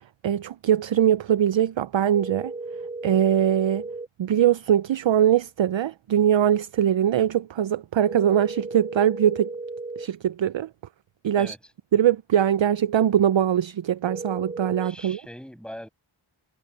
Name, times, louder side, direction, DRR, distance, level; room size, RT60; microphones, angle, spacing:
voice 1, 0.2-2.5 3.0-3.8 4.2-9.5 10.0-10.7 11.2-11.5 11.9-15.2, right 10 dB, 65° right, 0.5 m, -22 dB
sound 1, 2.1-4.1 8.1-10.1 14.1-14.9, right 3 dB, 15° right, 2.7 m, -35 dB
voice 2, 11.3-11.7 14.8-15.9, equal, ahead, 6.2 m, -41 dB
wide cardioid pair, 55°, 49 cm